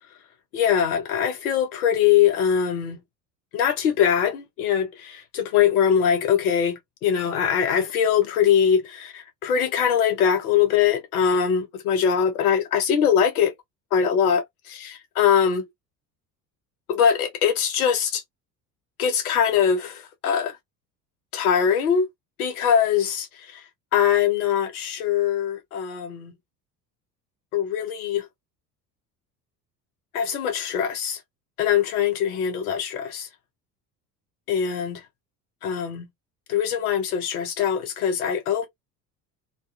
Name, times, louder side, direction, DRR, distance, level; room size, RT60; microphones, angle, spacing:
voice 1, 0.5-3.0 3.5-13.5 13.9-15.7 16.9-18.2 19.0-20.6 21.3-22.1 22.4-23.6 23.9-26.3 27.5-28.3 30.1-31.2 31.6-33.3 34.5-35.0 35.6-36.1 36.5-38.7, left 8 dB, 60° left, 0.7 m, -22 dB
2.3 x 2.3 x 2.5 m
figure-of-eight pair, 60°, 49 cm